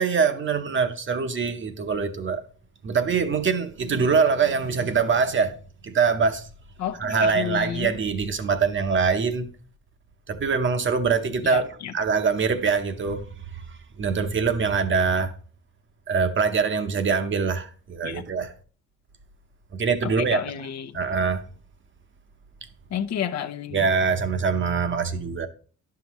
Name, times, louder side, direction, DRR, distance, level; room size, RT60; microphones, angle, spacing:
voice 1, 0.0-2.4 2.8-5.6 5.8-6.5 7.0-9.5 10.3-13.3 13.5-13.6 14.0-15.3 16.1-18.5 19.7-20.4 20.9-21.5 23.7-25.5, right 5 dB, 40° right, 0.9 m, -23 dB
voice 2, 6.8-7.9 11.4-11.9 18.0-18.2 20.0-21.0 22.9-23.9, left 9 dB, 60° left, 0.7 m, -31 dB
10.5 x 5.8 x 3.0 m
cardioid pair, 90°, 30 cm